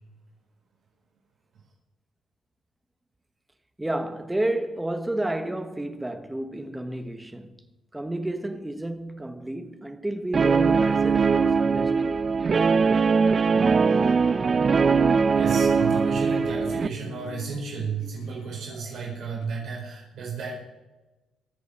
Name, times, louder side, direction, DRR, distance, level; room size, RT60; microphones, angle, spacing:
voice 1, 3.8-7.6 7.9-12.3, right 1 dB, 10° right, 1.2 m, -31 dB
Guitar, 10.3-16.9, right 5 dB, 40° right, 0.6 m, -21 dB
sound 1, 12.9-19.5, left 7 dB, 75° left, 1.9 m, -46 dB
voice 2, 15.3-20.5, right 5 dB, 70° right, 4.3 m, -33 dB
23.5 x 8.1 x 4.3 m
cardioid pair, 90°, 0 cm